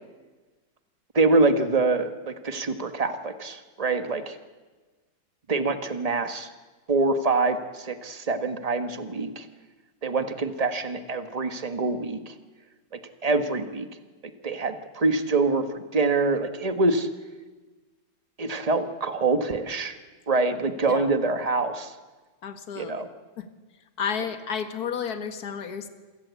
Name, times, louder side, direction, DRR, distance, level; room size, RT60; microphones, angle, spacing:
voice 1, 1.1-4.4 5.5-6.5 6.9-9.5 10.0-12.3 12.9-13.9 14.4-17.1 18.4-20.0 20.3-21.9 22.7-23.1, right 3 dB, 20° right, 8 dB, 1.2 m, -25 dB
voice 2, 22.4-22.9 23.4-23.5 24.0-25.9, left 7 dB, 50° left, 8 dB, 2.1 m, -31 dB
27.5 x 23.0 x 8.4 m, 1.3 s
omnidirectional pair, 2.3 m